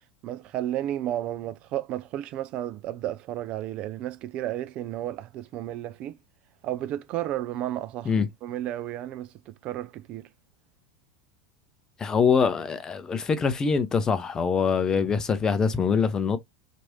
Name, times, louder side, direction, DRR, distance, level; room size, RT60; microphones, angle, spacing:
voice 1, 0.2-6.2 6.6-10.3, right 12 dB, 45° right, 0.3 m, -33 dB
voice 2, 12.0-16.4, left 5 dB, 25° left, 0.5 m, -24 dB
3.0 x 2.5 x 2.9 m
figure-of-eight pair, 85°, 3 cm